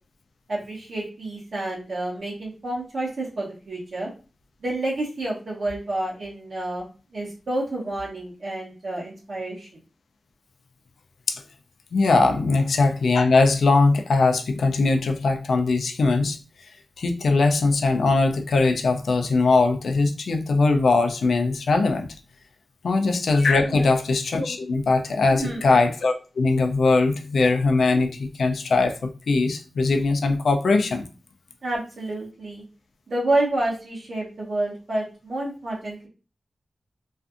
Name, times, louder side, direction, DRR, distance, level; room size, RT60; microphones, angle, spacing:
voice 1, 0.5-4.1 4.6-6.9 7.1-9.7 23.7-23.9 25.3-25.6 31.6-32.6 33.1-36.1, right 2 dB, 65° right, -6 dB, 0.8 m, -29 dB
voice 2, 11.9-16.4 17.0-22.1 22.8-31.1, left 3 dB, 85° left, 5 dB, 0.4 m, -21 dB
2.5 x 2.5 x 2.4 m, 0.34 s
wide cardioid pair, 115°, 0 cm